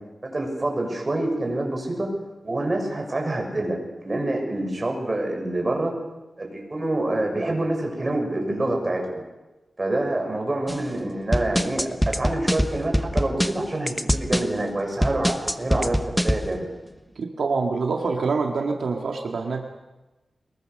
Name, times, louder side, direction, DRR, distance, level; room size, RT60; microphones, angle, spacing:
voice 1, 0.2-2.1 2.4-3.8 4.0-5.9 6.4-9.2 9.8-16.7, right 1 dB, 30° right, 1 dB, 6.6 m, -26 dB
sound 1, 10.7-10.8 11.3-14.5 15.0-16.5, equal, ahead, 1.0 m, -24 dB
voice 2, 17.2-19.8, right 4 dB, 85° right, 2 dB, 1.9 m, -26 dB
24.0 x 21.5 x 6.6 m, 1.1 s
wide cardioid pair, 100°, 0 cm